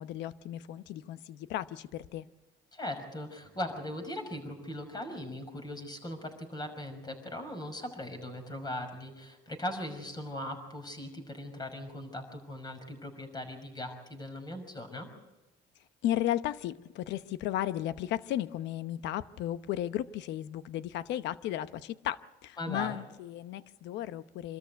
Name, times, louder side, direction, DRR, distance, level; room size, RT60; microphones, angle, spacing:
voice 1, 0.0-2.3 16.0-24.6, left 12 dB, 75° left, 0.9 m, -34 dB
voice 2, 2.7-15.1 22.6-23.0, left 1 dB, 20° left, 5.8 m, -39 dB
26.0 x 13.5 x 9.4 m
cardioid pair, 105°, 18 cm